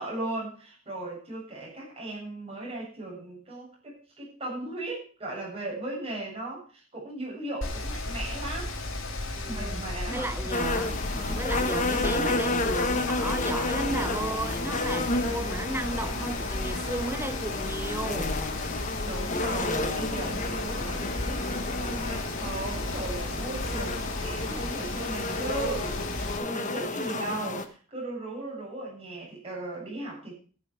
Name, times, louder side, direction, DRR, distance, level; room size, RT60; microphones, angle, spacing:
voice 1, 0.0-8.7 9.5-10.3 11.0-11.4 19.0-30.3, right 2 dB, 30° right, 7.4 m, -37 dB
Mechanical fan, 7.6-26.4, left 2 dB, 65° left, 2.5 m, -34 dB
voice 2, 9.4-18.5, right 2 dB, 10° right, 0.6 m, -34 dB
sound 1, 10.5-27.7, left 2 dB, 35° left, 1.4 m, -31 dB
13.5 x 10.5 x 4.8 m
head